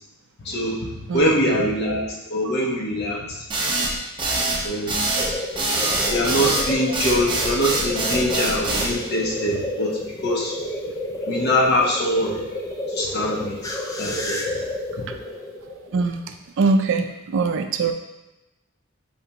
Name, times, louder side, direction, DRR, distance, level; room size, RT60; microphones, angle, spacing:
voice 1, 0.4-2.0 2.3-3.4 4.6-4.9 6.1-10.6 11.3-12.4 12.9-13.7 14.0-14.5 15.0-15.1, left 1 dB, 50° left, -3 dB, 0.9 m, -23 dB
sound 1, 3.5-8.9, right 2 dB, 20° right, 0.7 m, -24 dB
sound 2, 5.1-16.2, left 1 dB, 15° left, 0.4 m, -31 dB
voice 2, 16.6-17.1 17.3-17.9, right 4 dB, 60° right, 6 dB, 0.4 m, -21 dB
5.0 x 3.3 x 2.9 m, 1.0 s
head